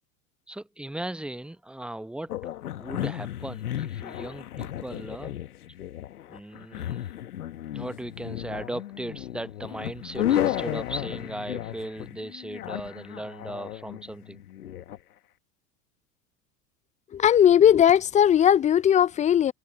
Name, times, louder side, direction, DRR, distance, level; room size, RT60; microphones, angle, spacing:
voice 1, 0.5-2.3 2.8-5.3 6.3-7.1 7.7-14.4, right 1 dB, ahead, 0.9 m, -37 dB
sound 1, 2.3-15.0, left 12 dB, 75° left, 1.7 m, -33 dB
voice 2, 17.1-19.5, left 9 dB, 15° left, 0.4 m, -18 dB
figure-of-eight pair, 80°, 45 cm